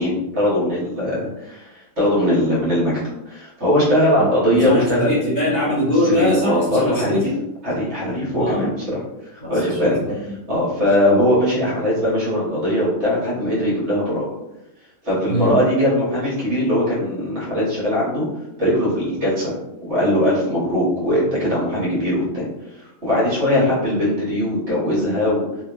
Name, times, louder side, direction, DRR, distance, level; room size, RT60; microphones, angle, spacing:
voice 1, 0.0-1.7 2.0-2.9 3.2-5.2 6.0-7.3 7.6-9.0 9.3-10.0 10.5-14.2 15.0-18.2 18.6-22.4 23.0-25.4, left 1 dB, 55° right, -8 dB, 1.4 m, -20 dB
voice 2, 4.2-7.3 8.3-8.8 9.4-10.4 15.3-15.6, left 1 dB, 35° left, -9 dB, 1.0 m, -23 dB
2.8 x 2.4 x 2.4 m, 0.91 s
omnidirectional pair, 1.4 m